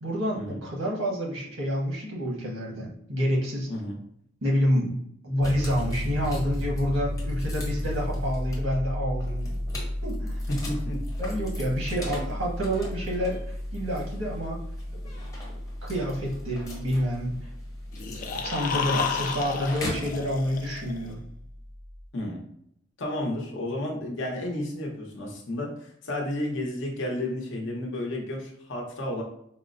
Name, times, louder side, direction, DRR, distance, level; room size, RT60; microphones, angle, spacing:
voice 1, 0.0-3.7 4.4-5.0 5.2-9.6 10.0-10.4 11.2-14.6 15.2-15.3 15.8-17.4 18.4-21.2, equal, 85° right, -3 dB, 1.2 m, -28 dB
sound 1, 5.4-20.2, left 1 dB, 15° left, 0.8 m, -43 dB
Piano, 5.4-22.1, equal, 30° right, 0.4 m, -34 dB
voice 2, 10.5-11.0 22.1-22.4 23.0-29.2, left 1 dB, 65° left, 0 dB, 0.8 m, -32 dB
sound 2, 17.9-21.1, left 6 dB, 40° left, 0.4 m, -31 dB
4.3 x 2.0 x 2.5 m, 0.71 s
head